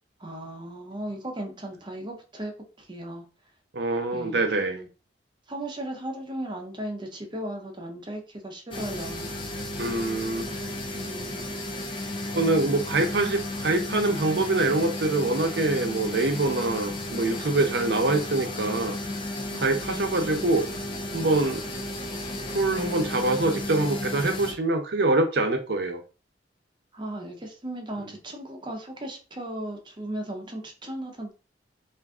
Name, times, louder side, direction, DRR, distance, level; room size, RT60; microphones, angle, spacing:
voice 1, 0.2-2.5 2.8-3.2 4.1-4.9 5.5-9.3 10.9-11.6 13.2-13.4 16.8-17.1 19.5-20.3 26.9-31.3, right 1 dB, 25° right, 0.6 m, -37 dB
voice 2, 3.7-4.8 9.8-10.5 12.3-19.0 19.6-20.6 21.1-21.6 22.5-26.0, right 2 dB, 65° right, 0.6 m, -24 dB
sound 1, 8.7-24.5, left 1 dB, 30° left, 0.4 m, -33 dB
2.5 x 2.4 x 3.5 m
head